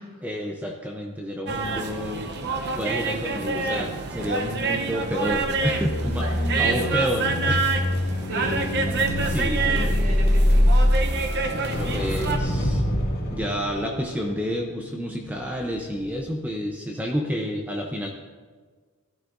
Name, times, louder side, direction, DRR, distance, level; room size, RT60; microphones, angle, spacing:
voice 1, 0.2-2.3 2.7-6.3 6.6-7.7 9.2-9.9 11.5-12.8 13.3-18.1, equal, 5° right, 1 dB, 0.7 m, -29 dB
sound 1, 1.5-12.4, right 4 dB, 50° right, 0.8 m, -28 dB
sound 2, 5.3-15.6 15.9-16.2, left 1 dB, 45° left, 2.3 m, -25 dB
voice 2, 6.2-7.0 8.3-8.6 9.6-10.7, right 1 dB, 80° right, -2 dB, 2.7 m, -34 dB
15.0 x 12.5 x 2.6 m, 1.5 s
head